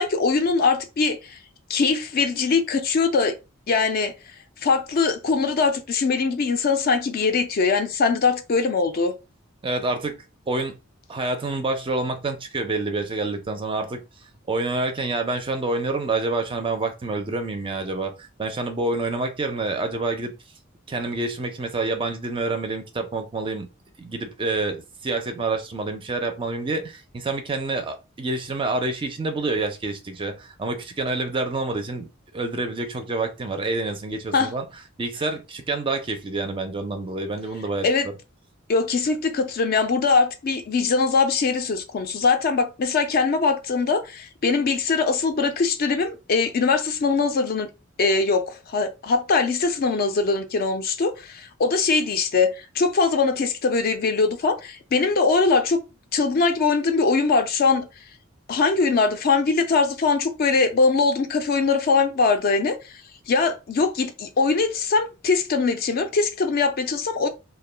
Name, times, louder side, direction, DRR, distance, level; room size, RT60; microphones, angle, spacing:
voice 1, 0.0-1.4 1.7-3.3 3.7-4.1 4.6-9.1 34.3-34.5 37.8-38.1 38.7-47.7 48.0-55.8 56.1-57.9 58.5-62.9 63.3-67.3, left 4 dB, 45° left, 0.4 m, -22 dB
voice 2, 9.6-10.2 10.5-10.8 11.1-14.0 14.5-20.3 20.9-23.7 24.0-32.1 32.3-34.6 35.0-38.1, right 3 dB, 25° right, 0.4 m, -27 dB
2.2 x 2.2 x 3.2 m
head